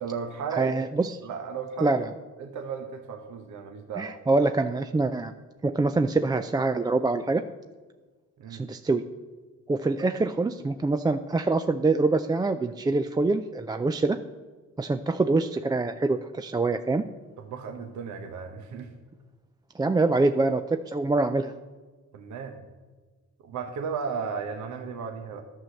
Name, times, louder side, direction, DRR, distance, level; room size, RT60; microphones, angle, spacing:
voice 1, 0.0-0.8 1.2-2.1 2.4-4.1 8.4-8.7 17.4-18.9 22.1-22.7 23.4-25.4, right 6 dB, 75° right, 5 dB, 1.0 m, -35 dB
voice 2, 0.6-1.1 1.8-2.1 4.0-5.3 5.6-7.4 8.5-9.0 9.7-14.2 14.8-17.0 19.7-21.5, right 3 dB, 15° right, 8 dB, 0.3 m, -25 dB
11.0 x 6.2 x 6.5 m, 1.3 s
cardioid pair, 90°, 30 cm